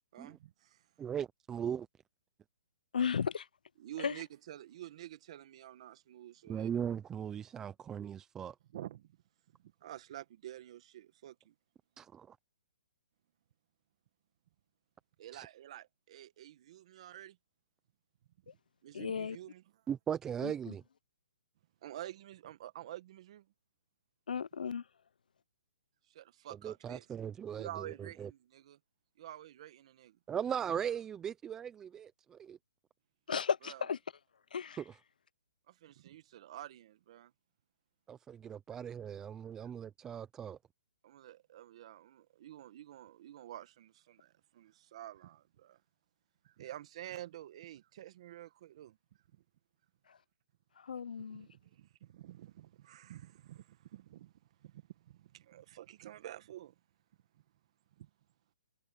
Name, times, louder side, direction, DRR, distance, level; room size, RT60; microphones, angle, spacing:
voice 1, 0.1-0.9 3.8-6.7 8.7-9.2 9.6-11.5 15.2-17.4 18.4-18.5 18.8-19.6 21.8-23.5 26.1-27.1 27.6-28.8 29.2-30.2 33.6-33.9 35.7-37.3 39.6-39.7 41.0-45.8 46.4-49.0 49.3-49.4 51.2-54.3 54.6-56.7 57.3-57.4 58.0-58.1, right 13 dB, 45° right, 1.8 m, -49 dB
voice 2, 1.0-1.9 6.5-8.5 12.0-12.4 15.3-15.5 19.9-20.8 26.6-28.3 30.3-32.6 34.8-34.9 38.1-40.6, right 8 dB, 10° right, 0.6 m, -38 dB
voice 3, 2.9-3.5 4.0-4.2 18.5-18.6 18.9-19.4 20.4-20.5 24.3-24.8 33.3-34.0 34.5-34.8 50.1-50.2 50.8-51.5, left 6 dB, 80° left, 0.8 m, -35 dB
hypercardioid pair, 155°, 5 cm